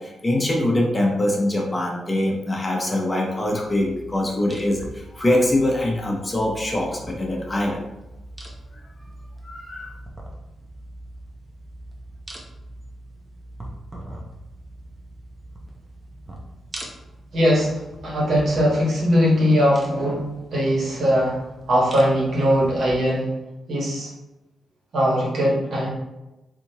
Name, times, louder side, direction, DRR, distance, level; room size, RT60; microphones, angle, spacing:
voice 1, 0.0-7.8 9.4-9.9, left 1 dB, 25° left, -1 dB, 0.8 m, -23 dB
sound 1, 3.4-23.0, right 1 dB, 20° right, 0.7 m, -42 dB
voice 2, 17.3-21.4 21.7-23.4 23.7-24.1 24.9-25.9, equal, 65° right, -5 dB, 1.4 m, -20 dB
3.4 x 2.8 x 2.8 m, 1.0 s
cardioid pair, 80°, 0 cm